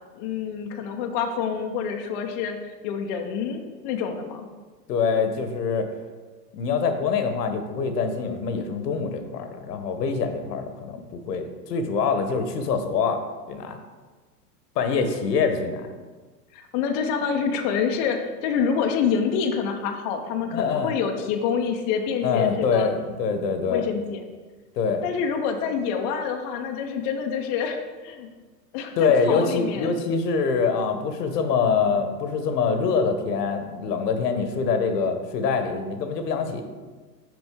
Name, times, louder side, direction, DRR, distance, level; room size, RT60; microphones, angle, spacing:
voice 1, 0.1-2.6 2.8-4.5 16.5-22.9 23.7-24.2 25.0-28.3 28.7-29.9, left 6 dB, 30° left, 4 dB, 0.4 m, -27 dB
voice 2, 4.9-5.9 6.5-13.2 13.5-13.8 14.7-15.9 20.5-21.0 22.2-23.8 24.8-25.0 29.0-36.6, left 5 dB, 75° left, 7 dB, 1.0 m, -24 dB
6.1 x 5.2 x 3.6 m, 1.4 s
hypercardioid pair, 115°, 49 cm